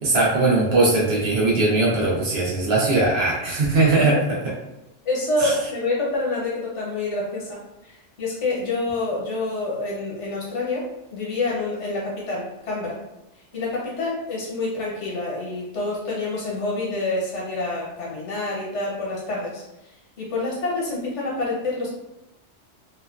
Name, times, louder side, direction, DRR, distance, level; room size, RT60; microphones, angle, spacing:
voice 1, 0.0-4.2 5.4-5.5, right 2 dB, 65° right, -4 dB, 0.9 m, -20 dB
voice 2, 5.0-7.6 7.8-10.9 11.1-13.0 13.5-19.6 20.2-21.9, left 2 dB, 80° left, -4 dB, 1.2 m, -27 dB
3.0 x 2.2 x 2.3 m, 0.91 s
omnidirectional pair, 1.2 m